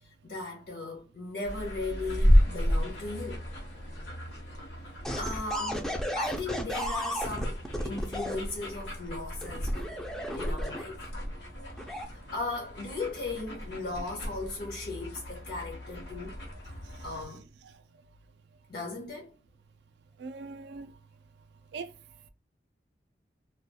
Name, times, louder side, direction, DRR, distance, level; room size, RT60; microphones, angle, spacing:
voice 1, 0.0-3.4 5.2-5.9 6.2-10.0 10.3-11.0 11.9-16.4 17.0-17.5 18.7-19.3, left 3 dB, 60° left, 0.6 m, -37 dB
sound 1, 1.4-17.3, equal, 75° left, 0.9 m, -32 dB
sound 2, 5.0-8.4 9.4-11.0 11.7-12.0, equal, 5° left, 0.3 m, -34 dB
voice 2, 20.2-20.9 21.7-21.9, right 4 dB, 75° right, 0.3 m, -40 dB
2.3 x 2.2 x 2.7 m
head